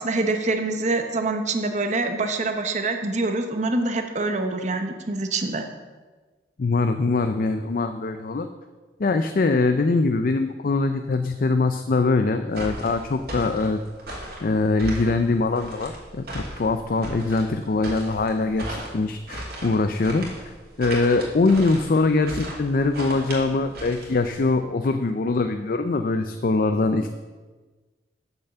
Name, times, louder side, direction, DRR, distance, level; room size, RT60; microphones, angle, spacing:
voice 1, 0.0-5.6, right 2 dB, 40° right, 6 dB, 0.8 m, -25 dB
voice 2, 6.6-8.5 9.0-13.8 14.4-20.5 20.8-27.1, left 3 dB, 55° left, 8 dB, 0.5 m, -23 dB
sound 1, 12.5-24.5, right 1 dB, 60° right, 2.6 m, -36 dB
8.0 x 6.9 x 6.8 m, 1.3 s
head